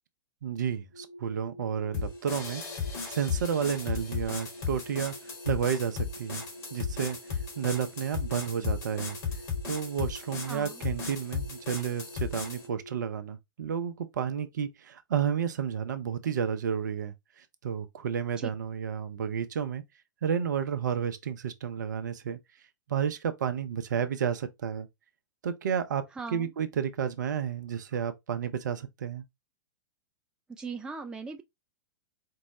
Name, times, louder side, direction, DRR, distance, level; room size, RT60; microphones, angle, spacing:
voice 1, 0.4-2.6 3.1-5.1 5.5-6.4 6.7-7.2 7.6-9.2 9.7-19.8 20.2-22.4 22.9-24.9 25.4-26.0 26.3-29.2, right 8 dB, 60° right, 0.5 m, -31 dB
sound 1, 0.9-13.0, equal, 75° left, 2.5 m, -48 dB
sound 2, 1.9-12.7, left 5 dB, 50° left, 1.4 m, -35 dB
voice 2, 10.5-10.8 18.4-18.5 26.2-26.5 30.5-31.4, right 4 dB, 5° right, 0.3 m, -39 dB
4.4 x 2.0 x 2.9 m
figure-of-eight pair, 100°, 11 cm